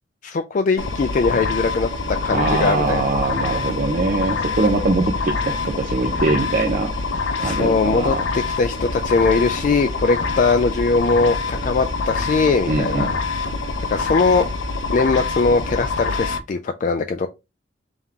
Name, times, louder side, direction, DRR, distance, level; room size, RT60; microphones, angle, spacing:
voice 1, 0.2-1.9 2.2-3.1 7.4-13.1 13.9-14.4 14.9-17.3, left 4 dB, 45° left, 0.3 m, -20 dB
sound 1, 0.8-16.4, left 4 dB, 80° left, 0.6 m, -25 dB
voice 2, 2.3-6.9 7.4-8.2 12.7-13.1, right 3 dB, 45° right, 0.6 m, -22 dB
3.6 x 3.5 x 2.8 m
head